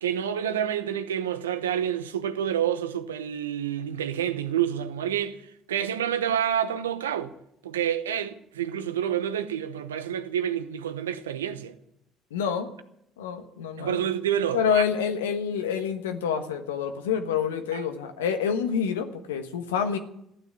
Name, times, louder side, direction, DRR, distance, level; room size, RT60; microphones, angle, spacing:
voice 1, 0.0-5.4 5.7-7.3 7.6-11.7 13.8-14.8 17.7-17.8, right 9 dB, 85° right, 0.9 m, -28 dB
voice 2, 12.3-12.7 13.2-14.0 14.5-20.0, left 7 dB, 80° left, 1.3 m, -27 dB
14.0 x 9.5 x 9.4 m
hypercardioid pair, 55°, 0 cm